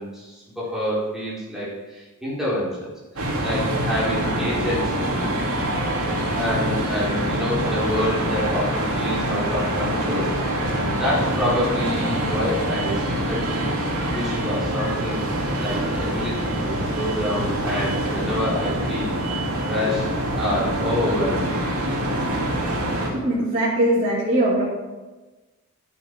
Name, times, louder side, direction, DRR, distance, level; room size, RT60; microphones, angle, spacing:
voice 1, 0.0-2.9 3.4-5.3 6.3-13.7 14.1-15.2 15.6-19.1 19.6-21.7, left 1 dB, ahead, -9 dB, 4.4 m, -27 dB
sound 1, 3.2-23.1, right 1 dB, 85° right, 2.3 m, -25 dB
voice 2, 23.1-24.6, right 1 dB, 30° right, -11 dB, 4.1 m, -21 dB
11.5 x 8.4 x 5.0 m, 1.2 s
head